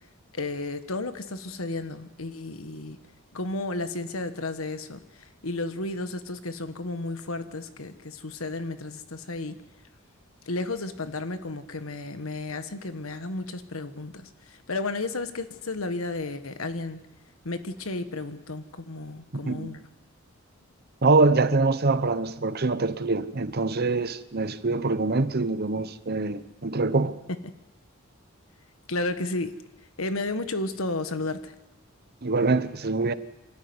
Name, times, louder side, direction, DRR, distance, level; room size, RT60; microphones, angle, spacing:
voice 1, 0.3-3.0 3.3-5.0 5.4-9.6 10.5-17.0 17.4-19.8 27.4-27.5 28.9-29.5 30.0-31.5, left 2 dB, 90° left, 1.5 m, -33 dB
voice 2, 21.0-27.1 32.2-33.1, right 3 dB, 50° right, 0.9 m, -24 dB
25.0 x 13.5 x 9.6 m
head